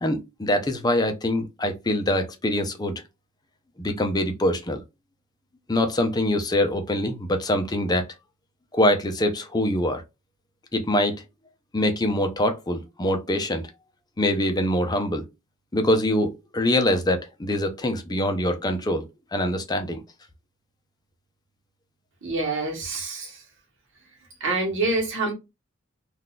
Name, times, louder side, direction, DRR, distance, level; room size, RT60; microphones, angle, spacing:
voice 1, 0.0-3.0 3.8-4.8 5.7-8.0 8.7-10.0 10.7-11.2 11.7-13.7 14.2-15.2 15.7-19.0 19.3-20.0, left 1 dB, 20° left, 0.5 m, -24 dB
voice 2, 22.2-23.4 24.4-25.3, right 2 dB, 65° right, 1.1 m, -26 dB
3.8 x 2.4 x 2.3 m
head